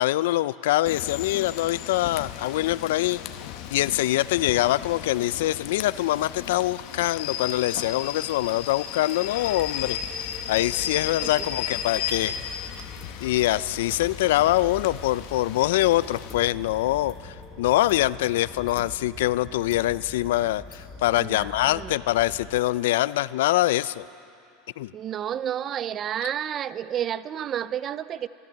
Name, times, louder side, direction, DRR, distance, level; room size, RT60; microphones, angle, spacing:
voice 1, 0.0-3.2 3.7-12.4 13.2-24.0 24.8-24.9, left 15 dB, 80° left, 18 dB, 0.3 m, -24 dB
Rain / Train, 0.9-16.3, left 10 dB, 55° left, 0.8 m, -35 dB
sound 1, 9.2-22.6, left 3 dB, 20° left, 1.2 m, -42 dB
voice 2, 21.2-21.9 24.9-28.3, right 10 dB, 30° right, 17 dB, 0.3 m, -31 dB
15.0 x 13.5 x 6.8 m, 2.6 s
supercardioid pair, 155°, 0 cm